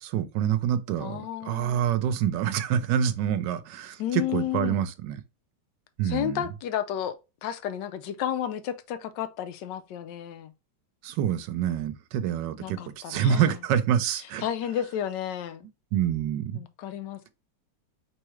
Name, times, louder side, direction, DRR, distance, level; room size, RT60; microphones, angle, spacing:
voice 1, 0.0-5.2 6.0-6.5 11.0-14.4 15.9-16.6, right 9 dB, 90° right, 1.3 m, -27 dB
voice 2, 1.0-1.8 4.0-4.9 6.0-10.5 12.6-13.5 14.4-15.7 16.5-17.3, left 10 dB, 85° left, 1.3 m, -32 dB
4.7 x 3.4 x 3.1 m
omnidirectional pair, 1.9 m